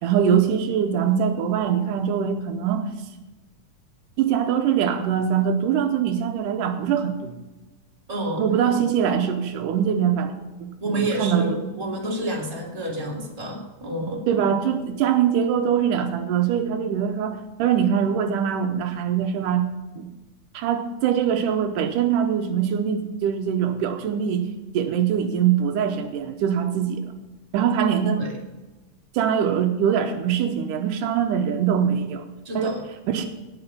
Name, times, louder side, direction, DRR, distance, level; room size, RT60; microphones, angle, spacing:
voice 1, 0.0-2.9 4.2-7.4 8.4-11.6 14.3-19.7 20.0-20.1 20.5-24.5 24.7-27.0 27.5-28.2 29.1-32.3 32.6-32.7 33.1-33.3, right 8 dB, 80° right, 6 dB, 2.4 m, -23 dB
voice 2, 8.1-8.5 10.8-14.2 28.2-28.4 32.4-32.8, right 1 dB, 10° right, -2 dB, 2.3 m, -29 dB
17.5 x 6.2 x 5.7 m, 1.1 s
omnidirectional pair, 3.7 m